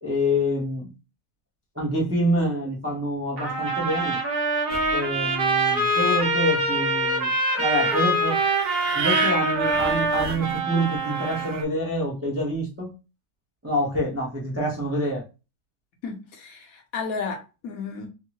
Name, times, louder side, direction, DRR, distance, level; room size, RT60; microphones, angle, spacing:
voice 1, 0.0-0.9 1.8-4.2 4.9-7.3 7.6-8.4 8.9-12.9 13.6-15.2, equal, 20° right, 0.4 m, -26 dB
Trumpet, 3.4-11.5, right 1 dB, 50° right, 0.8 m, -24 dB
sound 1, 4.7-11.6, right 6 dB, 75° right, 1.1 m, -33 dB
voice 2, 16.0-18.1, left 5 dB, 65° left, 1.1 m, -33 dB
3.6 x 2.0 x 2.8 m
omnidirectional pair, 1.7 m